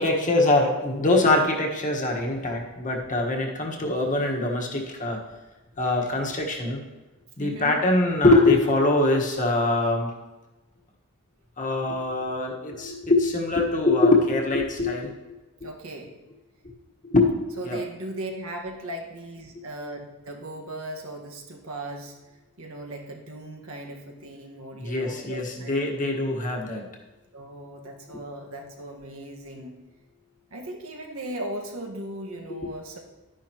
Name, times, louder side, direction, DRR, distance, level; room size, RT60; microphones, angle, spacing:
voice 1, 0.0-5.2 5.8-6.8 7.4-10.1 11.6-15.1 17.1-17.3 17.6-17.8 24.8-26.8, left 2 dB, 35° left, 0 dB, 1.5 m, -23 dB
voice 2, 7.4-7.8 15.6-16.1 17.6-22.1 22.6-26.2 27.3-29.7 30.5-33.0, right 1 dB, 70° right, 1 dB, 1.6 m, -37 dB
12.0 x 10.0 x 3.0 m, 1.1 s
head